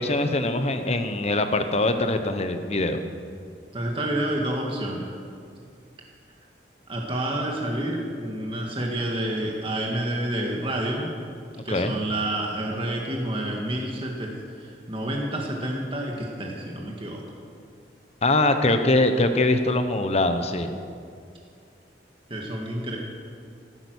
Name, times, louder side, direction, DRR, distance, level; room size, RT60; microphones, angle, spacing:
voice 1, 0.0-3.0 11.7-11.9 18.2-20.7, left 2 dB, 35° left, 8 dB, 1.1 m, -23 dB
voice 2, 3.7-5.1 6.9-11.1 11.6-17.2 22.3-23.0, right 1 dB, 30° right, -1 dB, 1.8 m, -29 dB
15.0 x 14.0 x 6.3 m, 2.3 s
head